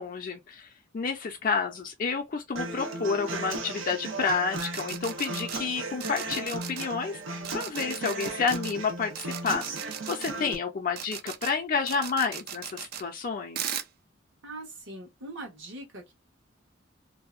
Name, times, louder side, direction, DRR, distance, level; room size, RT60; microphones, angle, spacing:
voice 1, 0.0-13.8, left 5 dB, 45° left, 0.4 m, -30 dB
Human voice / Acoustic guitar, 2.6-10.5, right 2 dB, 85° right, 0.7 m, -36 dB
sound 1, 4.5-5.6 6.0-6.9 7.4-8.7 9.2-10.3 11.0-11.5 11.9-13.0 13.6-13.9, right 9 dB, 50° right, 0.4 m, -37 dB
voice 2, 14.4-16.1, right 2 dB, 70° right, 1.1 m, -41 dB
2.6 x 2.1 x 2.4 m
head